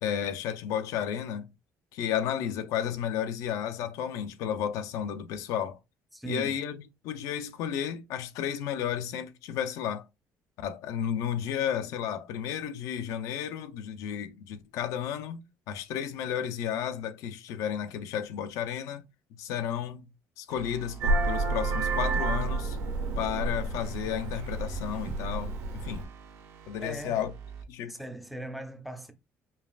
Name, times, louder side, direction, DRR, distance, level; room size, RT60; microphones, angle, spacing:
voice 1, 0.0-1.5 1.9-5.8 6.3-10.0 10.6-19.0 19.4-20.1 20.4-22.8 23.2-26.1 26.7-27.3 27.7-28.0, left 9 dB, 75° left, 0.5 m, -32 dB
voice 2, 6.1-6.6 26.8-27.2 27.8-29.1, right 1 dB, ahead, 0.5 m, -39 dB
sound 1, 20.5-27.6, right 7 dB, 55° right, 0.7 m, -45 dB
Vehicle horn car horn honking, 21.0-26.0, right 3 dB, 75° right, 1.3 m, -30 dB
5.4 x 2.4 x 2.4 m
cardioid pair, 175°, 6 cm